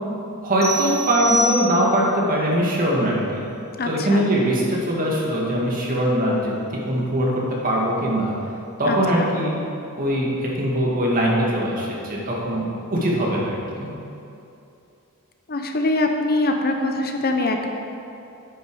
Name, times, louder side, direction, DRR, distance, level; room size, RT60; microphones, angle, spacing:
voice 1, 0.4-3.5 3.8-6.5 6.9-8.3 8.8-9.5 9.9-13.9, equal, 40° right, -3 dB, 2.1 m, -21 dB
sound 1, 0.6-2.1, right 1 dB, 15° right, 1.8 m, -26 dB
voice 2, 3.8-4.3 8.9-9.3 15.5-17.7, left 2 dB, 45° left, 4 dB, 0.8 m, -23 dB
9.6 x 9.3 x 4.9 m, 2.8 s
head